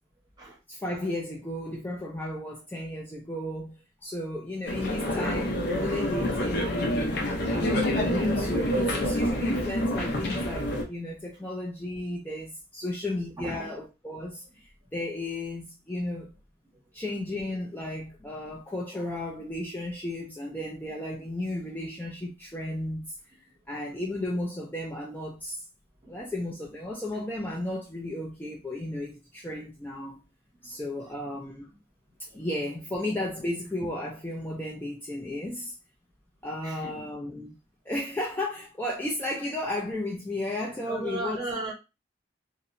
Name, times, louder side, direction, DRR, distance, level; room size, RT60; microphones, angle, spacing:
voice 1, 0.7-16.4 16.9-23.4 23.7-25.6 26.1-30.2 30.6-31.7 32.3-35.8 36.4-37.6 37.9-41.4, left 1 dB, 10° left, 0.3 m, -34 dB
sound 1, 4.7-10.8, left 1 dB, 55° left, 0.6 m, -27 dB
voice 2, 13.4-13.8 16.7-16.8 26.0-26.2 30.6-31.2 32.3-32.5 36.6-37.1 40.8-41.7, right 2 dB, 20° right, 0.8 m, -37 dB
2.8 x 2.0 x 2.5 m
head